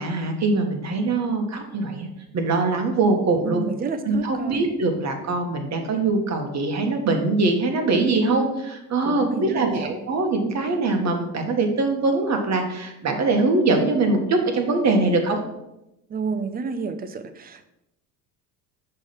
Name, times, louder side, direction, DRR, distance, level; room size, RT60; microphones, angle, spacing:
voice 1, 0.0-2.1 2.3-3.6 4.0-15.4, right 3 dB, 40° right, 4 dB, 1.4 m, -22 dB
voice 2, 3.4-4.7 9.0-10.0 16.1-17.7, right 5 dB, 20° right, 10 dB, 0.6 m, -30 dB
6.1 x 3.3 x 5.7 m, 0.88 s
supercardioid pair, 85°, 44 cm